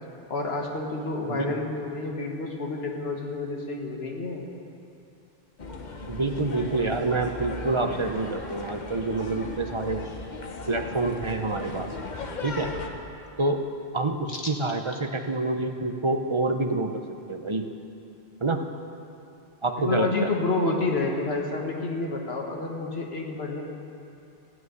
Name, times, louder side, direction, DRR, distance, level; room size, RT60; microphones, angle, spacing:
voice 1, 0.3-4.5 14.3-14.4 19.8-23.6, left 3 dB, 75° left, 0 dB, 1.7 m, -29 dB
voice 2, 1.3-1.6 6.1-10.0 10.7-11.9 12.4-12.7 13.4-13.6 13.9-17.0 17.3-17.7 18.4-18.6 19.6-20.3, right 2 dB, 35° right, 5 dB, 0.6 m, -27 dB
sound 1, 5.6-12.9, left 2 dB, 45° left, 1.0 m, -37 dB
14.5 x 6.3 x 9.2 m, 2.7 s
omnidirectional pair, 1.1 m